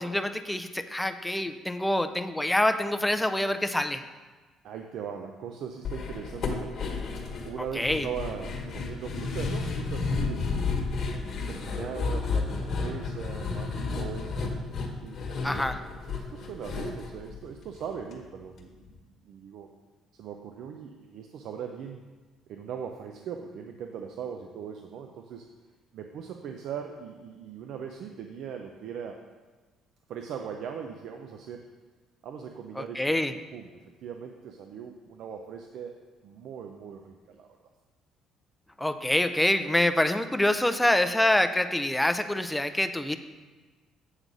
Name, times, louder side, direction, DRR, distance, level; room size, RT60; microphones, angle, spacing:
voice 1, 0.0-4.0 7.7-8.1 15.4-15.8 32.8-33.3 38.8-43.2, left 1 dB, 5° left, 9 dB, 0.4 m, -26 dB
voice 2, 4.6-7.0 7.4-10.7 11.5-14.6 15.0-19.7 20.1-22.0 22.5-25.5 25.9-29.2 30.1-31.7 32.2-33.2 33.5-33.7 34.0-35.9 36.2-37.5, right 7 dB, 70° right, 4 dB, 0.5 m, -40 dB
sound 1, 5.8-18.1 18.4-18.5 18.9-19.0, left 4 dB, 50° left, 1.3 m, -32 dB
7.9 x 3.9 x 6.1 m, 1.3 s
cardioid pair, 105°, 0 cm